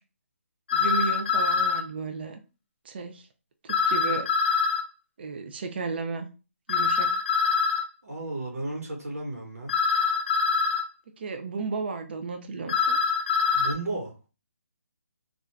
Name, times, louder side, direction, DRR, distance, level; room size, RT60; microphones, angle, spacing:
sound 1, 0.7-1.8 3.7-4.8 6.7-7.8 9.7-10.8 12.7-13.7, left 5 dB, 40° left, 0.6 m, -24 dB
voice 1, 0.7-2.4 2.8-3.3 3.6-4.3 5.2-6.3 6.7-7.1 11.2-13.0, right 4 dB, 45° right, 0.4 m, -33 dB
voice 2, 8.0-9.8 13.5-14.3, right 2 dB, 90° right, 1.3 m, -34 dB
2.5 x 2.3 x 3.2 m
hypercardioid pair, 165°, 8 cm